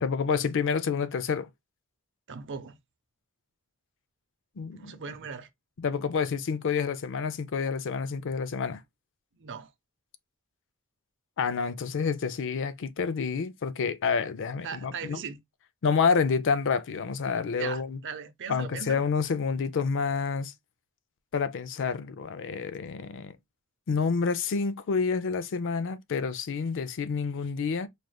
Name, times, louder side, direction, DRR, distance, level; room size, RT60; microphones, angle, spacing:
voice 1, 0.0-1.5 4.6-5.0 5.8-8.8 11.4-15.2 15.8-18.0 18.5-20.5 21.3-23.3 23.9-27.9, left 5 dB, 60° left, 0.5 m, -28 dB
voice 2, 2.3-2.8 4.7-5.5 9.3-9.7 14.6-15.4 17.6-19.0, right 6 dB, 55° right, 0.7 m, -38 dB
4.8 x 3.2 x 2.2 m
head